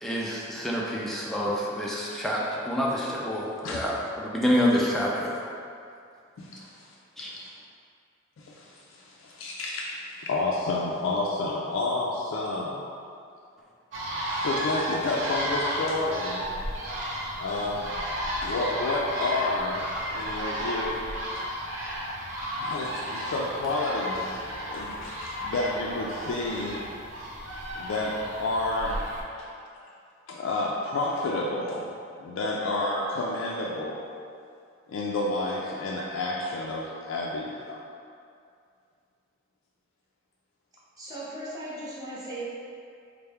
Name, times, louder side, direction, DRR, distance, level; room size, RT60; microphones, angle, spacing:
voice 1, 0.0-5.4 7.2-7.3, equal, ahead, -5 dB, 0.3 m, -27 dB
voice 2, 6.4-6.9 7.2-7.5 8.4-12.8 14.3-16.5 17.4-17.9 18.4-21.0 22.6-26.8 27.8-29.0 29.4-29.5 30.3-31.9 32.2-34.0 34.9-37.8, left 2 dB, 80° left, -3 dB, 0.3 m, -30 dB
sound 1, 13.9-29.2, equal, 65° right, 0.6 m, -33 dB
voice 3, 41.0-42.4, right 1 dB, 20° right, -8 dB, 0.8 m, -37 dB
4.3 x 2.0 x 3.4 m, 2.4 s
head